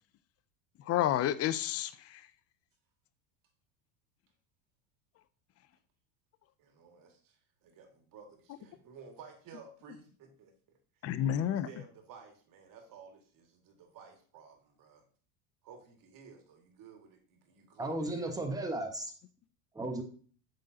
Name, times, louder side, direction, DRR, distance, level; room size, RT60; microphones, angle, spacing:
voice 1, 0.9-2.2 11.0-11.7, left 11 dB, 35° left, 15 dB, 0.5 m, -30 dB
voice 2, 6.6-7.1 7.6-10.5 11.3-15.0 15.6-18.4, right 5 dB, 45° right, 4 dB, 2.1 m, -54 dB
voice 3, 17.8-19.1 19.7-20.0, right 2 dB, 10° right, 3 dB, 1.4 m, -35 dB
8.2 x 6.5 x 2.8 m, 0.43 s
supercardioid pair, 105°, 45 cm